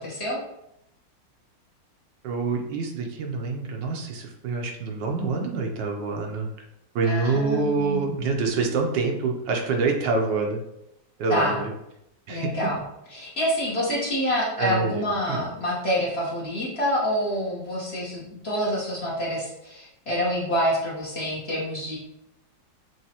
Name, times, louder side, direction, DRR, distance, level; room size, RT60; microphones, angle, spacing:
voice 1, 0.0-0.4 7.0-8.2 11.3-11.6 12.3-12.8 13.1-22.0, equal, 40° left, -6 dB, 1.3 m, -27 dB
voice 2, 2.2-6.5 6.9-10.6 11.2-11.7 12.3-12.5 14.6-15.5, right 4 dB, 80° right, 2 dB, 1.4 m, -26 dB
6.3 x 2.7 x 2.9 m, 0.81 s
omnidirectional pair, 2.0 m